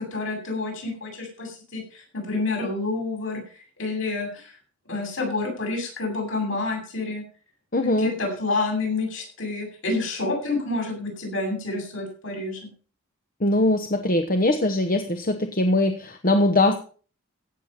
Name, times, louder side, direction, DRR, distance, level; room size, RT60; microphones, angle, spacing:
voice 1, 0.0-3.4 3.8-4.6 4.9-7.2 8.0-12.6, left 3 dB, 65° left, 0 dB, 7.9 m, -28 dB
voice 2, 7.7-8.1 13.4-16.8, left 1 dB, 40° left, 6 dB, 1.1 m, -21 dB
16.0 x 7.7 x 5.8 m, 0.41 s
head